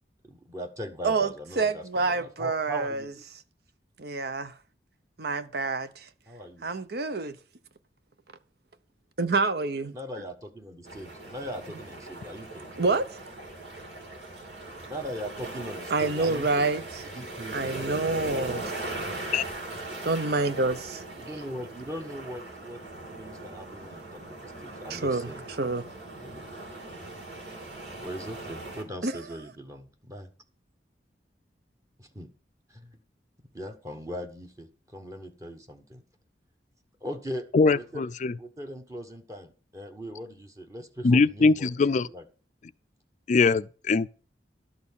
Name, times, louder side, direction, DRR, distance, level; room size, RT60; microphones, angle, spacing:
voice 1, 0.2-3.2 6.3-6.7 9.9-12.7 14.8-16.7 17.0-17.7 21.1-22.8 23.2-25.5 26.2-26.4 27.9-30.3 32.0-32.3 32.7-33.0 33.5-36.0 37.0-37.5 37.7-38.1 38.4-41.7 42.0-42.2, equal, 20° right, 1.1 m, -40 dB
voice 2, 1.6-3.1 4.0-4.5 5.2-6.1 6.6-7.4 9.2-9.9 12.8-13.2 15.9-17.0 17.5-18.7 20.0-21.0 24.9-25.3 25.6-25.8 29.0-29.1, right 3 dB, 60° right, 0.8 m, -27 dB
sound 1, 10.8-28.8, right 2 dB, 80° right, 3.4 m, -39 dB
voice 3, 37.5-38.3 41.0-42.1 43.3-44.1, left 4 dB, 45° left, 0.4 m, -22 dB
12.0 x 4.3 x 7.1 m
head